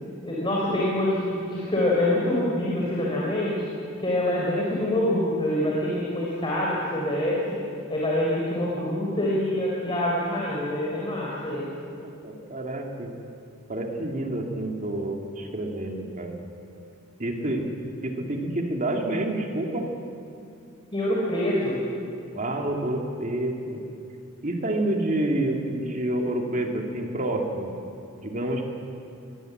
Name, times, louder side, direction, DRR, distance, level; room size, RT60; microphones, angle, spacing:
voice 1, 0.2-3.5 4.0-7.4 7.9-11.7 20.9-21.8, left 1 dB, 25° left, -4 dB, 4.0 m, -25 dB
voice 2, 11.7-13.1 13.7-16.4 17.2-17.7 18.0-19.9 22.3-23.8 24.4-27.7 28.2-28.6, right 1 dB, 35° right, 1 dB, 2.5 m, -28 dB
22.5 x 20.5 x 8.0 m, 2.6 s
head